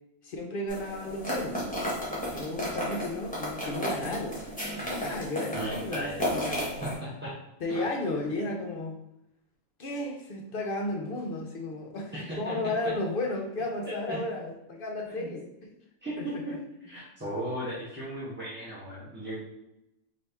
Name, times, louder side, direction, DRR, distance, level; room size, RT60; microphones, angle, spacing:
voice 1, 0.2-1.8 2.3-4.4 4.8-7.0 7.6-9.0 9.8-15.7 16.2-16.4, left 2 dB, 55° left, 2 dB, 0.6 m, -34 dB
sound 1, 0.7-6.9, equal, 5° left, 1.1 m, -33 dB
voice 2, 5.5-6.2 6.8-7.3 7.7-7.8 12.1-12.5 13.8-14.2 15.1-15.3 16.0-16.5 16.8-19.3, right 1 dB, 10° right, -9 dB, 0.7 m, -36 dB
4.1 x 2.6 x 3.4 m, 0.87 s
omnidirectional pair, 1.4 m